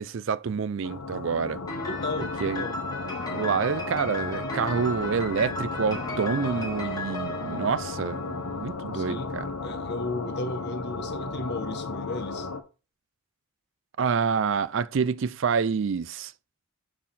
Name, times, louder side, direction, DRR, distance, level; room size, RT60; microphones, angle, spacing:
voice 1, 0.0-1.6 2.2-2.7 3.3-9.5 14.0-16.3, right 6 dB, 60° right, 0.4 m, -27 dB
sound 1, 0.8-12.6, left 3 dB, 90° left, 1.0 m, -35 dB
Piano, 1.7-8.5, left 1 dB, 15° left, 1.4 m, -36 dB
voice 2, 1.9-2.7 8.9-9.3 9.6-12.5, left 2 dB, 50° left, 1.1 m, -34 dB
6.3 x 5.7 x 4.1 m
head